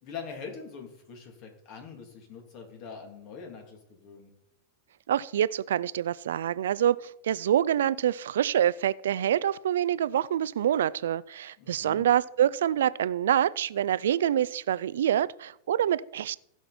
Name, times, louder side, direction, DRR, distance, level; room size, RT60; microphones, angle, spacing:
voice 1, 0.0-4.3 11.6-12.1, left 5 dB, 45° left, 3 dB, 3.1 m, -43 dB
voice 2, 5.1-16.4, right 10 dB, 85° right, 18 dB, 0.3 m, -26 dB
16.0 x 5.8 x 4.3 m, 0.78 s
hypercardioid pair, 130°, 0 cm